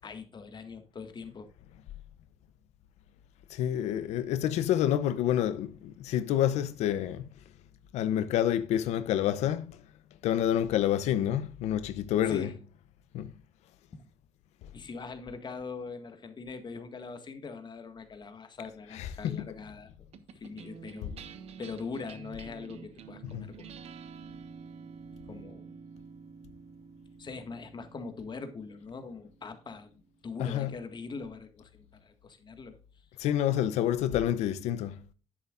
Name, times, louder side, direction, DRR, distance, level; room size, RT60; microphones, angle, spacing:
voice 1, 0.0-1.5 12.2-12.6 13.9-14.0 14.7-19.9 20.3-21.1 21.6-23.8 25.3-25.8 27.2-29.9 30.2-32.8, left 4 dB, 45° left, 1.7 m, -42 dB
voice 2, 3.5-7.3 7.9-9.8 10.2-12.5 13.1-13.3 18.9-19.5 23.2-23.5 30.4-30.8 33.2-35.0, left 11 dB, 85° left, 0.7 m, -28 dB
sound 1, 20.1-30.7, right 6 dB, 70° right, 1.2 m, -49 dB
10.0 x 8.4 x 2.5 m
cardioid pair, 80°, 11 cm